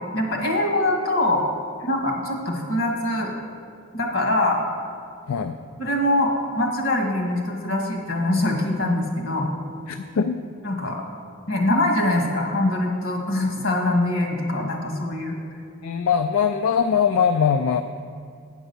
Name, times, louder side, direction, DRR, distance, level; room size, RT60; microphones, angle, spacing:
voice 1, 0.1-1.4 1.8-3.3 3.9-4.6 5.8-9.5 10.6-11.0 11.5-15.4, left 1 dB, 65° left, 1 dB, 1.6 m, -23 dB
voice 2, 5.3-5.6 9.9-10.4 15.8-17.8, left 7 dB, 85° left, 8 dB, 0.4 m, -21 dB
8.8 x 6.1 x 6.9 m, 2.3 s
head